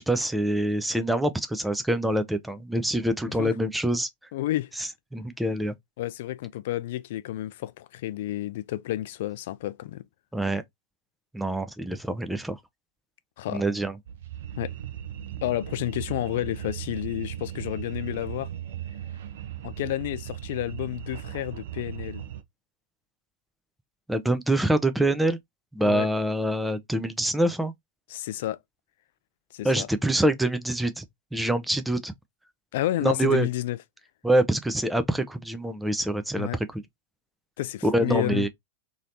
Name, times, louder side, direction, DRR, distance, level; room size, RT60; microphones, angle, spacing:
voice 1, 0.0-4.1 4.8-5.7 10.3-10.6 11.3-12.6 13.5-13.9 24.1-25.4 25.7-27.7 29.6-31.0 31.3-32.1 33.0-33.5 34.2-36.8 37.8-38.5, right 1 dB, 5° right, 0.5 m, -25 dB
voice 2, 4.3-4.7 6.0-10.0 13.4-13.6 14.6-14.7 15.4-18.5 19.6-22.2 25.8-26.1 28.1-28.6 29.5-29.9 32.7-33.8 36.4-36.6 37.6-38.5, left 14 dB, 55° left, 0.3 m, -30 dB
sound 1, 14.1-22.4, right 11 dB, 55° right, 0.5 m, -37 dB
3.1 x 2.8 x 2.5 m
figure-of-eight pair, 90°, 0 cm